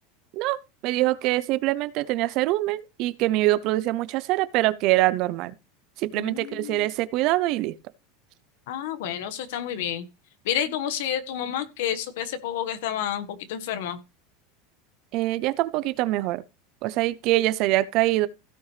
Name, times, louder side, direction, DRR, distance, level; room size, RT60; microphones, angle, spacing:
voice 1, 0.3-5.5 6.0-7.8 15.1-16.4 16.8-18.3, right 17 dB, 45° right, 0.6 m, -24 dB
voice 2, 6.1-6.9 8.7-10.0 10.4-14.0, left 10 dB, 70° left, 1.4 m, -30 dB
16.5 x 6.0 x 3.2 m
supercardioid pair, 165°, 0 cm